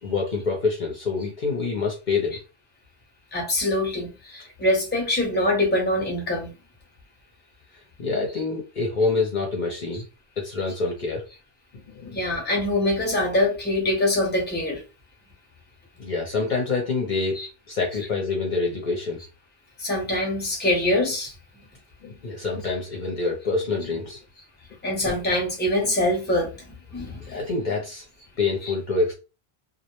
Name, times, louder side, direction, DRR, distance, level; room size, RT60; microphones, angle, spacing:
voice 1, 0.0-2.4 8.0-10.0 10.4-11.2 11.9-12.2 16.0-17.4 17.7-19.2 22.0-24.2 27.3-28.0 28.4-29.1, left 4 dB, 55° left, 0.7 m, -26 dB
voice 2, 3.3-6.5 9.9-10.0 12.1-14.8 17.4-17.5 19.8-21.3 24.8-27.5 28.6-28.7, left 1 dB, 10° left, 0.7 m, -24 dB
2.3 x 2.0 x 2.9 m
omnidirectional pair, 1.1 m